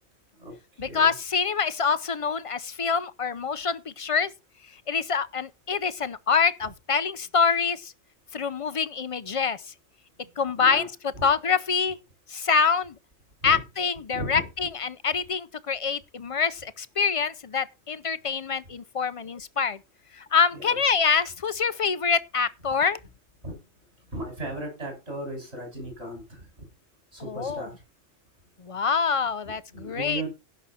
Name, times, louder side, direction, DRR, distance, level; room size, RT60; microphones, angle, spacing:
voice 1, 0.8-4.3 4.9-7.9 8.3-9.6 10.4-10.9 11.2-12.0 12.3-12.9 13.4-19.8 20.1-23.0 27.2-27.7 28.6-30.2, left 5 dB, 40° left, 0.5 m, -25 dB
voice 2, 14.1-14.5 23.4-23.5 24.1-26.2 27.1-27.7 29.8-30.3, right 1 dB, 55° right, 7.1 m, -35 dB
17.0 x 6.3 x 4.3 m
omnidirectional pair, 1.3 m